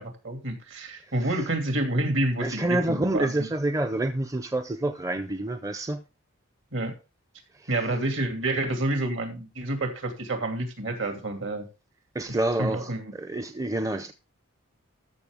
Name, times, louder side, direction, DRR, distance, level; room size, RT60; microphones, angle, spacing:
voice 1, 0.0-3.5 6.7-6.9 7.7-11.7 12.6-13.1, right 1 dB, 65° right, 2.7 m, -28 dB
voice 2, 2.4-6.0 7.5-7.7 12.1-14.1, right 2 dB, 15° right, 0.6 m, -28 dB
13.5 x 6.2 x 3.6 m
head